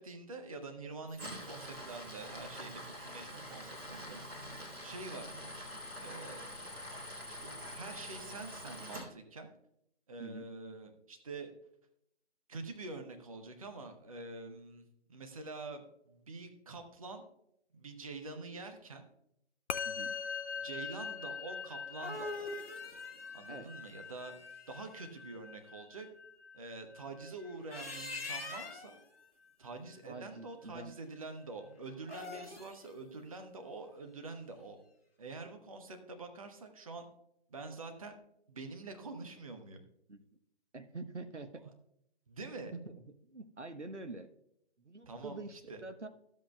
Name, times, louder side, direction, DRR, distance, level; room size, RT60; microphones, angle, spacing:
voice 1, 0.0-5.5 6.0-6.9 7.3-9.5 10.1-11.5 12.5-17.2 17.7-19.0 20.6-22.5 23.3-24.3 24.7-26.1 26.5-29.0 29.6-34.8 35.2-37.1 37.5-38.2 38.5-39.8 41.5-41.7 42.3-42.7 45.1-45.8, right 3 dB, 30° right, 5 dB, 1.0 m, -46 dB
Tools, 1.1-9.0, equal, 5° right, 0.9 m, -45 dB
Musical instrument, 19.7-29.2, left 6 dB, 80° left, 0.6 m, -43 dB
voice 2, 19.8-20.1 23.5-23.7 30.0-30.9 40.1-40.2 40.7-41.6 42.8-42.9 43.2-44.3 44.8-46.1, right 2 dB, 85° right, 9 dB, 1.1 m, -46 dB
sound 1, 21.7-24.8 27.5-29.0 32.0-32.9, left 2 dB, 60° left, 1.9 m, -44 dB
14.0 x 7.8 x 2.3 m, 0.76 s
figure-of-eight pair, 150°, 34 cm